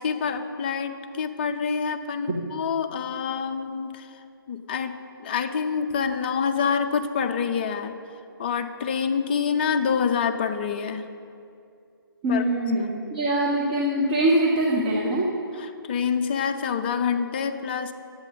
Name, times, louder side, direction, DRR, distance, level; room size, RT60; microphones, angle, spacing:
voice 1, 0.0-8.0 8.4-11.1 12.3-12.4 12.8-13.0 15.6-17.9, left 6 dB, 25° left, 7 dB, 0.4 m, -27 dB
voice 2, 12.2-15.4, right 1 dB, 20° right, -3 dB, 0.7 m, -23 dB
10.5 x 8.2 x 4.0 m, 2.5 s
figure-of-eight pair, 145°, 13 cm